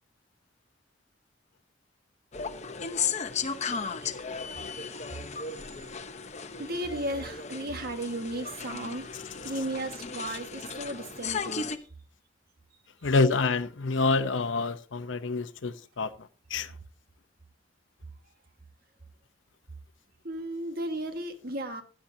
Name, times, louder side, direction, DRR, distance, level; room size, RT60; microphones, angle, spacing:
sound 1, 2.3-11.8, left 5 dB, 40° left, 0.9 m, -35 dB
voice 1, 6.6-9.2 9.4-11.7 20.2-21.8, right 1 dB, 55° right, 1.6 m, -35 dB
voice 2, 13.0-16.1 16.5-16.7, left 3 dB, 85° left, 0.8 m, -27 dB
16.0 x 10.5 x 2.7 m
head